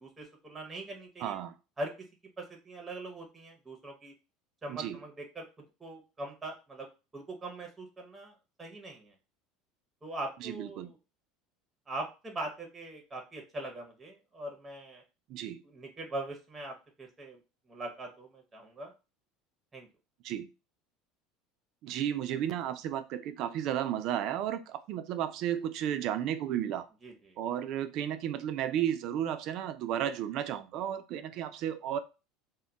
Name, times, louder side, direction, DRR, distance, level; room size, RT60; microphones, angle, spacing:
voice 1, 0.0-1.4 1.8-1.9 2.4-4.1 4.6-5.4 5.8-6.9 7.1-8.3 8.6-9.1 10.0-10.9 11.9-15.0 15.6-17.4 17.7-18.9 19.7-19.9 27.0-27.4, right 2 dB, 15° right, 2 dB, 0.6 m, -41 dB
voice 2, 1.2-1.5 4.7-5.0 10.4-10.9 15.3-15.6 20.2-20.5 21.8-26.9 27.4-32.0, right 10 dB, 55° right, 10 dB, 0.3 m, -33 dB
2.2 x 2.1 x 3.8 m, 0.30 s
supercardioid pair, 135°, 0 cm